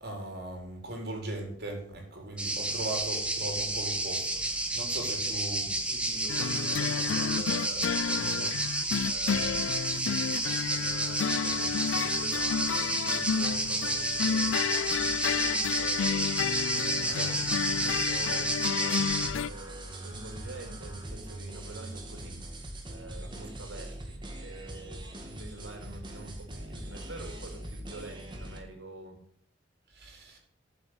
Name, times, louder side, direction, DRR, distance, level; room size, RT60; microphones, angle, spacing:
voice 1, 0.0-5.7 17.0-17.3 23.2-23.3 29.9-30.4, right 2 dB, 55° right, 2 dB, 4.5 m, -39 dB
sound 1, 2.4-19.3, right 2 dB, 5° right, 1.5 m, -31 dB
voice 2, 2.6-3.0 5.1-5.3 5.9-8.5 9.0-29.2, right 2 dB, 75° right, 4 dB, 3.3 m, -46 dB
sound 2, 6.3-19.5, left 7 dB, 85° left, 0.4 m, -31 dB
sound 3, 19.1-28.6, right 1 dB, 25° right, 2.2 m, -42 dB
10.5 x 7.6 x 8.2 m, 0.63 s
head